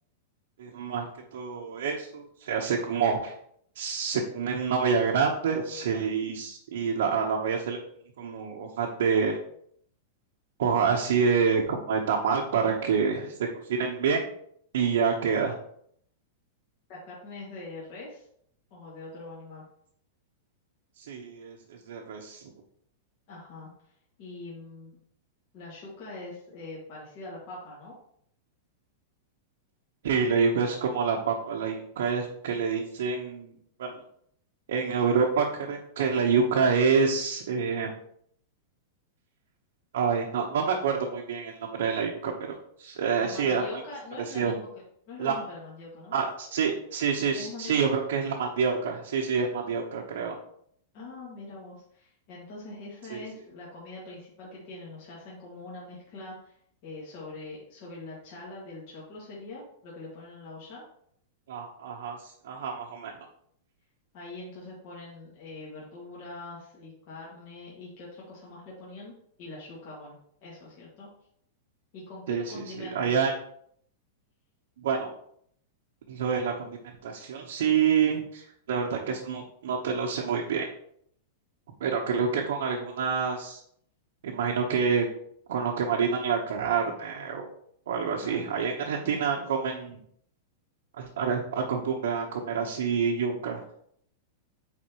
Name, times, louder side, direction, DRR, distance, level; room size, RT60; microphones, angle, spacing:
voice 1, 0.6-3.3 3.7-7.8 8.2-9.4 10.6-13.3 13.6-14.3 14.7-15.6 21.0-22.4 30.0-33.5 33.8-34.0 34.7-37.9 39.9-43.6 44.3-44.5 45.2-45.4 46.1-50.4 53.1-53.2 61.5-63.1 72.3-73.3 74.8-75.1 76.1-80.7 81.8-83.6 84.2-85.1 85.5-87.5 87.9-90.0 91.0-93.6, right 6 dB, 70° right, -1 dB, 0.9 m, -27 dB
voice 2, 16.9-18.2 18.7-19.6 23.3-23.7 24.2-25.0 25.5-28.0 43.2-44.7 45.1-46.2 47.3-47.9 50.9-56.6 56.8-60.8 64.1-70.2 70.4-71.1 71.9-73.1 88.2-88.5 88.8-89.2, left 2 dB, 40° left, -6 dB, 2.0 m, -43 dB
9.3 x 3.9 x 3.0 m, 0.67 s
supercardioid pair, 170°, 0 cm